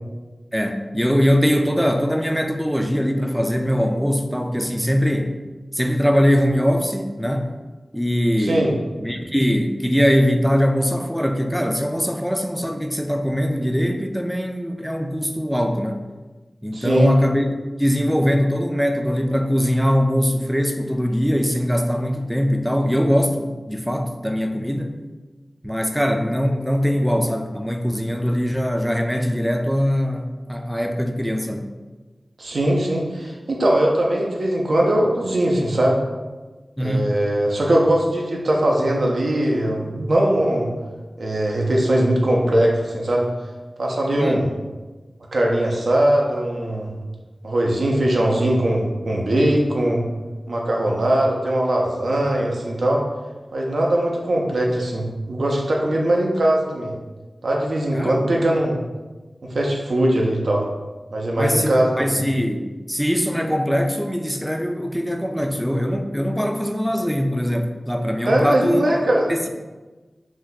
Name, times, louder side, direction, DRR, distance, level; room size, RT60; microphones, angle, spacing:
voice 1, 0.5-5.3 5.7-7.5 7.9-8.7 9.0-16.0 16.6-17.5 17.8-25.0 25.6-31.7 36.8-37.1 44.1-44.5 57.9-58.2 61.4-68.8 69.3-69.5, equal, ahead, 4 dB, 0.3 m, -21 dB
voice 2, 8.4-8.7 16.7-17.1 32.4-36.0 36.8-40.7 41.2-43.3 43.8-44.5 45.3-46.9 47.4-50.0 50.5-53.0 53.5-56.9 57.4-58.8 59.4-60.6 61.1-62.2 68.3-69.2, right 1 dB, 85° right, -1 dB, 0.5 m, -20 dB
2.6 x 2.2 x 3.9 m, 1.2 s
wide cardioid pair, 50°, 0 cm